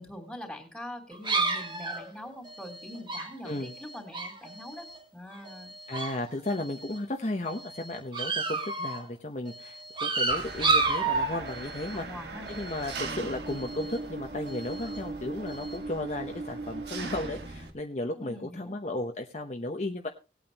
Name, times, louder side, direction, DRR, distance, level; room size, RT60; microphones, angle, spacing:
voice 1, 0.0-5.7 11.9-12.5 13.1-13.3 18.2-18.7, left 1 dB, 5° left, 4 dB, 3.4 m, -43 dB
sound 1, 1.1-5.0 5.3-6.2 6.4-7.0 7.5-9.1 9.5-12.0 12.5-13.0 13.5-14.0 14.5-15.0 15.5-15.8, right 3 dB, 25° right, 1.7 m, -32 dB
voice 2, 5.9-12.1 12.5-20.1, left 1 dB, 40° left, 3 dB, 1.0 m, -34 dB
Engine, 10.3-17.7, right 3 dB, 70° right, 1.6 m, -39 dB
19.5 x 8.8 x 2.9 m, 0.29 s
head